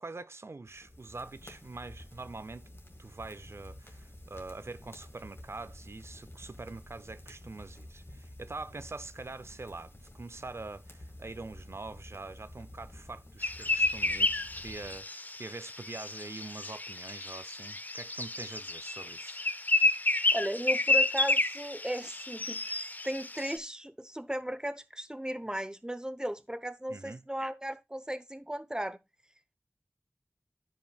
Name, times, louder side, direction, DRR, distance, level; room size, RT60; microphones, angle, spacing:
voice 1, 0.0-2.7 3.0-19.4 26.9-27.2, right 3 dB, 70° right, 0.5 m, -44 dB
sound 1, 0.7-15.0, left 1 dB, 65° left, 1.8 m, -50 dB
sound 2, 13.4-23.6, left 2 dB, 40° left, 0.5 m, -30 dB
voice 2, 20.3-29.0, right 1 dB, 15° right, 0.8 m, -36 dB
12.0 x 5.2 x 2.3 m
wide cardioid pair, 45°, 5 cm